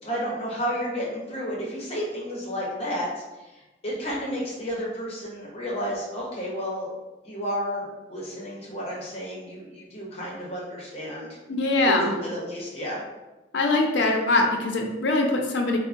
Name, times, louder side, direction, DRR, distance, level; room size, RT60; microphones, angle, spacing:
voice 1, 0.0-3.1 3.5-6.9 7.2-11.4 11.8-13.0, equal, 35° left, -4 dB, 0.8 m, -31 dB
voice 2, 11.5-12.1 13.5-15.8, left 2 dB, 90° left, 2 dB, 0.5 m, -22 dB
3.6 x 2.0 x 2.5 m, 1.1 s
head